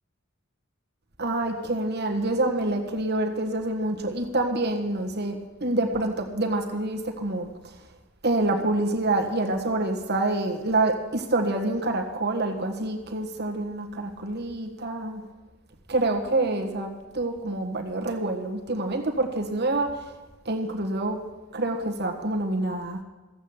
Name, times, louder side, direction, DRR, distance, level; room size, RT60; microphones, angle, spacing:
voice 1, 1.2-7.5 8.2-15.2 15.9-16.9 17.1-20.1 20.4-21.2 21.5-23.0, right 2 dB, 50° right, 3 dB, 1.5 m, -27 dB
14.5 x 8.5 x 7.2 m, 1.2 s
head